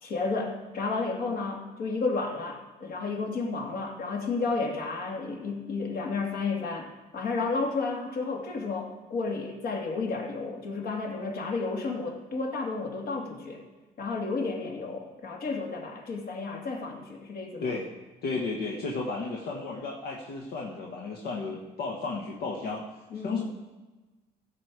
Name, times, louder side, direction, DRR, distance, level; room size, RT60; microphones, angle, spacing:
voice 1, 0.0-13.6 14.0-17.7 23.1-23.4, left 4 dB, 60° left, 1 dB, 2.4 m, -32 dB
voice 2, 18.2-22.8 23.2-23.4, left 3 dB, 75° left, -2 dB, 1.5 m, -33 dB
15.0 x 7.4 x 4.8 m, 1.2 s
cardioid pair, 110°, 17 cm